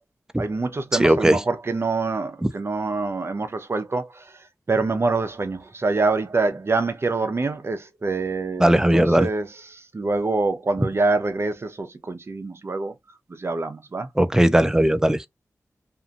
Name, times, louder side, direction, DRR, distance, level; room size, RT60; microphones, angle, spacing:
voice 1, 0.4-4.1 4.7-12.9 13.4-14.1, right 3 dB, 45° right, 0.6 m, -25 dB
voice 2, 1.0-1.4 2.4-2.5 8.6-9.3 14.2-15.2, right 1 dB, 10° right, 0.4 m, -18 dB
2.8 x 2.5 x 2.3 m
wide cardioid pair, 70°, 6 cm